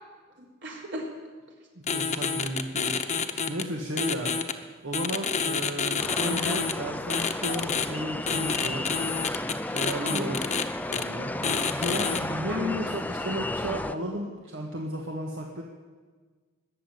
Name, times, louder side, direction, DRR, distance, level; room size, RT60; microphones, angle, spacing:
voice 1, 0.4-1.1 10.0-10.3 12.5-12.7, right 1 dB, 65° right, -1 dB, 3.6 m, -36 dB
voice 2, 1.8-4.3 4.8-8.9 9.6-10.5 10.9-15.6, right 1 dB, 80° right, 0 dB, 1.7 m, -34 dB
sound 1, 1.9-3.6 4.0-4.5 4.9-6.7 7.1-7.9 8.3-10.6 10.9-11.0 11.4-12.2, left 6 dB, 35° left, 0.9 m, -28 dB
sound 2, 6.0-14.0, left 1 dB, 10° left, 0.4 m, -33 dB
20.5 x 7.3 x 9.3 m, 1.5 s
head